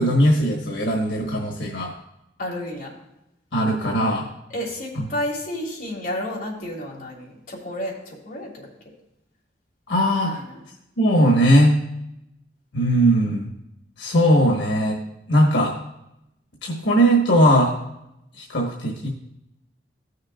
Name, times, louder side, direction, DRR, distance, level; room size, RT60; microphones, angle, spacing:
voice 1, 0.0-1.9 3.5-4.3 9.9-10.4 11.0-11.8 12.7-13.5 14.0-15.0 15.3-15.8 16.6-17.8 18.4-19.1, equal, 90° left, 0 dB, 1.3 m, -19 dB
voice 2, 2.4-3.0 4.5-8.7 10.2-10.6, left 1 dB, 55° left, -4 dB, 3.0 m, -31 dB
15.5 x 6.5 x 2.4 m, 0.85 s
head